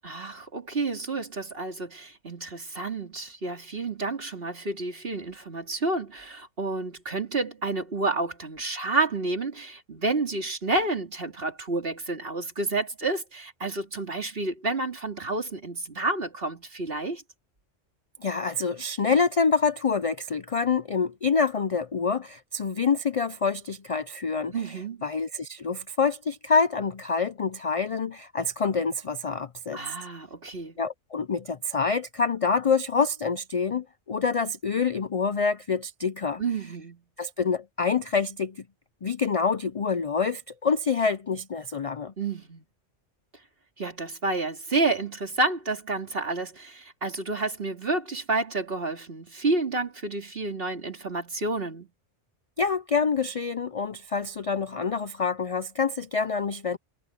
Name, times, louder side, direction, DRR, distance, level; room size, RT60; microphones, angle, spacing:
voice 1, 0.0-17.2 24.5-25.0 29.7-30.8 36.4-37.0 42.2-42.6 43.8-51.9, right 3 dB, 50° right, 3.0 m, -30 dB
voice 2, 18.2-29.8 30.8-36.4 37.2-38.6 39.0-42.1 52.6-56.8, left 5 dB, 45° left, 0.4 m, -26 dB
omnidirectional pair, 1.2 m